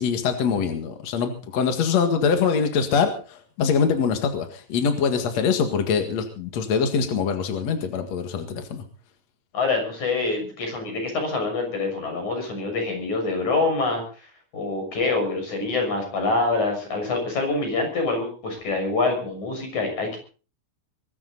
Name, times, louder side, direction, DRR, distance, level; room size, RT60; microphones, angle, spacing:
voice 1, 0.0-8.8, left 6 dB, 60° left, 6 dB, 1.8 m, -23 dB
voice 2, 9.5-14.0 14.5-20.2, left 3 dB, 35° left, 4 dB, 7.5 m, -25 dB
22.5 x 14.0 x 4.0 m, 0.37 s
omnidirectional pair, 5.9 m